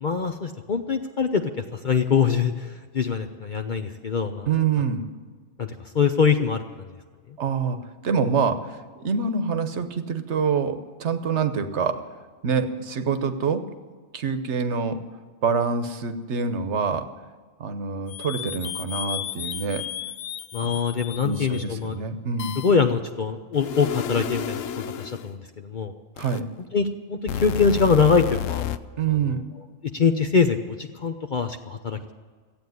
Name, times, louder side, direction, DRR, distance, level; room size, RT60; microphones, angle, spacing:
voice 1, 0.0-1.4 1.8-2.5 2.9-4.5 5.6-5.7 5.9-6.6 20.5-22.0 22.6-24.6 25.0-25.4 25.7-25.9 26.7-28.6 29.9-30.7 31.0-32.1, left 5 dB, 45° left, 6 dB, 0.7 m, -23 dB
voice 2, 4.5-5.0 7.4-7.8 8.0-12.1 12.4-13.6 14.1-15.0 15.4-17.1 17.6-19.8 20.6-20.7 21.2-22.6 26.2-26.4 29.0-29.4, right 5 dB, 65° right, 9 dB, 1.2 m, -26 dB
sound 1, 18.1-21.7 22.4-22.7 23.6-25.3 26.2-26.4 27.3-28.8, left 10 dB, 80° left, 1.0 m, -32 dB
15.0 x 8.7 x 9.4 m, 1.5 s
omnidirectional pair, 1.3 m